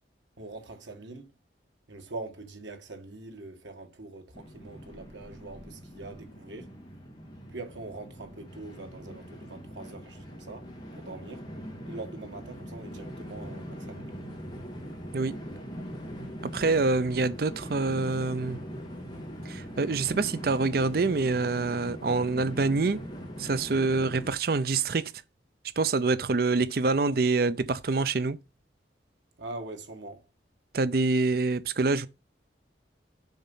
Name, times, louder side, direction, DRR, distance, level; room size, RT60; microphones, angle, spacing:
voice 1, 0.4-1.3 1.9-6.7 7.5-10.7 10.9-11.5 11.9-14.1 29.4-30.2, right 2 dB, 85° right, 2.0 m, -43 dB
Train, 4.3-24.3, equal, 25° left, 2.4 m, -41 dB
voice 2, 16.5-18.6 19.4-23.0 23.4-25.1 25.8-28.4 30.7-32.1, right 3 dB, 55° right, 0.5 m, -26 dB
7.1 x 5.3 x 5.5 m
head